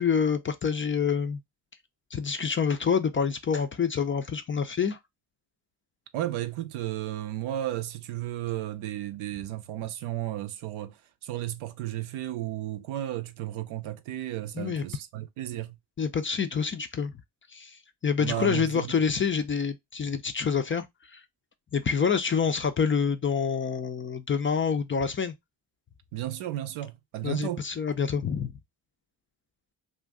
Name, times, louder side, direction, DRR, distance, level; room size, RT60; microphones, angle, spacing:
voice 1, 0.0-1.4 2.1-5.0 14.6-14.8 16.0-17.1 17.5-21.2 21.7-25.3 27.2-28.5, left 6 dB, 25° left, 0.4 m, -27 dB
voice 2, 6.1-15.8 18.2-18.9 26.1-27.6, right 13 dB, 80° right, 0.6 m, -33 dB
2.5 x 2.2 x 3.4 m
supercardioid pair, 40°, 49 cm